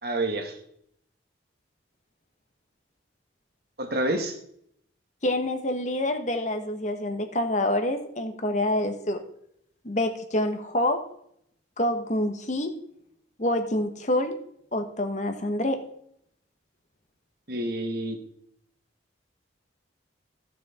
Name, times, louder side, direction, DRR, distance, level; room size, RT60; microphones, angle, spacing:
voice 1, 0.0-0.6 3.8-4.4 17.5-18.2, right 1 dB, 55° right, 5 dB, 1.6 m, -28 dB
voice 2, 5.2-9.2 9.8-11.0 11.8-12.7 13.4-14.4 14.7-15.9, left 1 dB, 40° left, 6 dB, 1.3 m, -27 dB
14.5 x 6.3 x 4.3 m, 0.70 s
head